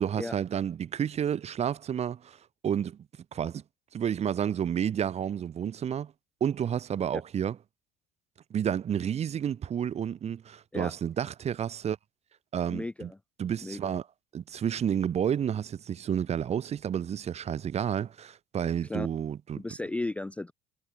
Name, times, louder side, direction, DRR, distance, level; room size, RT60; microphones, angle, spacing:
voice 1, 0.0-2.4 2.6-3.0 3.3-3.6 3.9-6.1 6.4-7.6 8.5-12.0 12.5-13.1 13.4-14.0 14.3-19.6, right 9 dB, 40° right, 1.2 m, -30 dB
voice 2, 12.7-13.2 13.6-13.9 18.9-19.1 19.6-20.5, left 2 dB, 10° left, 0.4 m, -35 dB
hypercardioid pair, 65°, 16 cm